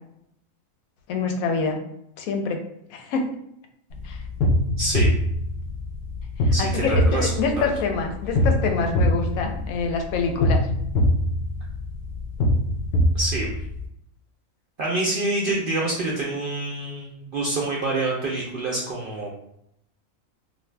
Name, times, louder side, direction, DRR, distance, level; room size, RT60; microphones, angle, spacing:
voice 1, 1.1-1.8 2.2-2.6 2.9-3.3 4.0-4.2 6.4-10.7, left 4 dB, 85° left, 4 dB, 1.0 m, -26 dB
sound 1, 3.9-13.8, left 1 dB, 60° left, 0.7 m, -23 dB
voice 2, 4.8-5.1 6.5-7.3 7.6-7.7 13.1-13.5 14.8-19.3, right 2 dB, 65° right, -3 dB, 0.5 m, -26 dB
2.6 x 2.3 x 3.2 m, 0.76 s
omnidirectional pair, 1.4 m